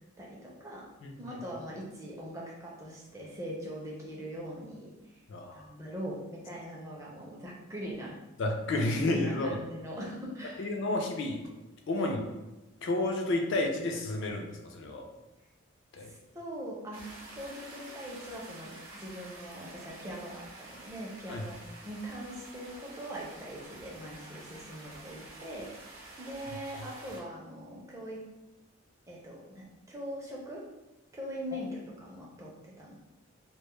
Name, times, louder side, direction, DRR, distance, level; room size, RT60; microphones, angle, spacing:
voice 1, 0.2-0.9 1.2-5.2 5.5-8.2 8.6-8.7 9.1-11.0 12.0-12.1 16.0-25.7 26.2-28.3 29.1-30.7 31.1-32.9, equal, 15° right, -3 dB, 0.4 m, -42 dB
voice 2, 1.0-1.3 5.3-5.7 8.4-9.6 10.6-11.4 11.9-12.3 12.8-15.0 15.9-16.1 21.3-21.4, left 2 dB, 60° left, 2 dB, 0.4 m, -31 dB
sound 1, 16.9-27.2, right 2 dB, 80° right, 0.6 m, -49 dB
2.1 x 2.0 x 2.9 m, 1.0 s
head